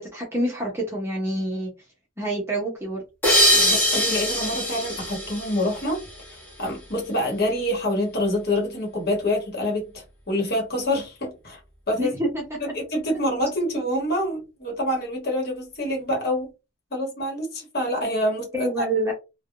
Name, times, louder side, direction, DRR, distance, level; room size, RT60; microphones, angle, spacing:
voice 1, 0.0-1.7 2.2-3.0 12.0-12.7 18.5-19.1, right 1 dB, 15° right, 0.7 m, -27 dB
sound 1, 3.2-6.3, equal, 10° left, 0.9 m, -22 dB
voice 2, 3.5-6.0 6.3-11.6 11.9-12.1 12.7-16.5 16.9-18.8, left 1 dB, 50° left, 1.2 m, -26 dB
3.4 x 2.2 x 2.4 m
head